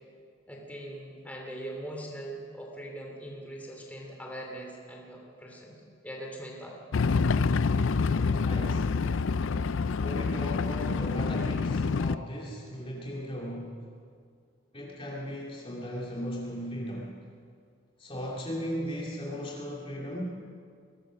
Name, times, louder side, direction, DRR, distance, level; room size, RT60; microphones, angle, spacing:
voice 1, 0.5-6.8, right 1 dB, 5° left, -1 dB, 3.0 m, -41 dB
sound 1, 6.9-12.2, left 4 dB, 70° left, 0.5 m, -27 dB
voice 2, 8.1-8.9 10.0-13.7 14.7-17.1 18.0-20.2, equal, 25° left, -3 dB, 2.6 m, -37 dB
22.5 x 18.0 x 6.4 m, 2.2 s
head